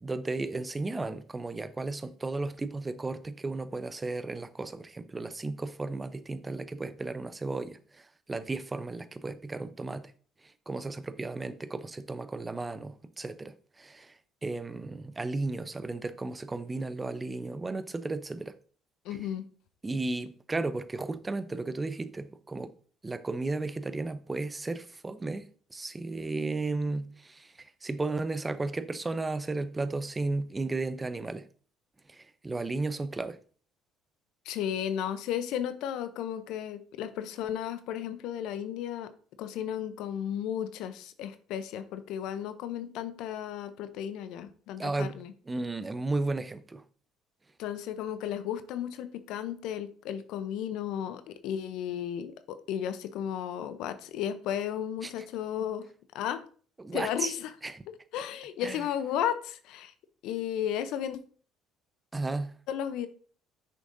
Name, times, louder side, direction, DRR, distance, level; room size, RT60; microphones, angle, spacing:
voice 1, 0.0-8.0 8.3-10.1 10.7-14.1 14.4-18.5 19.1-19.2 19.8-22.7 23.0-31.5 32.1-33.4 44.8-45.2 45.5-46.8 55.0-55.1 56.8-57.4 57.6-57.8 58.6-58.8 62.1-62.6, right 3 dB, 20° right, 0.7 m, -34 dB
voice 2, 19.0-19.4 34.5-39.1 39.4-45.3 47.6-55.9 56.1-56.4 56.9-57.5 58.1-59.9 60.2-61.2 62.7-63.1, left 10 dB, 65° left, 0.7 m, -34 dB
8.2 x 6.3 x 2.7 m
hypercardioid pair, 60°, 0 cm